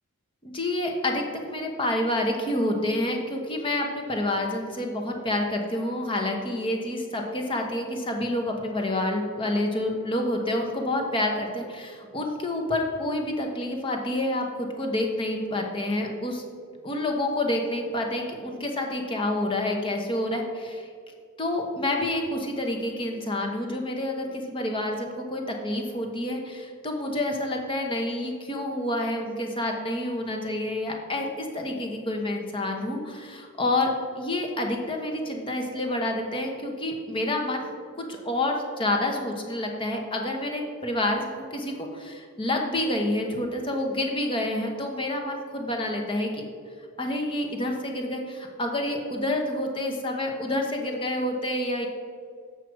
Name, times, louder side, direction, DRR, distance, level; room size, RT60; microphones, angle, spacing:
voice 1, 0.4-16.4 16.8-20.9 21.4-33.9 34.2-46.4 47.0-51.9, left 1 dB, 25° left, 2 dB, 1.0 m, -28 dB
7.8 x 6.3 x 4.6 m, 2.1 s
head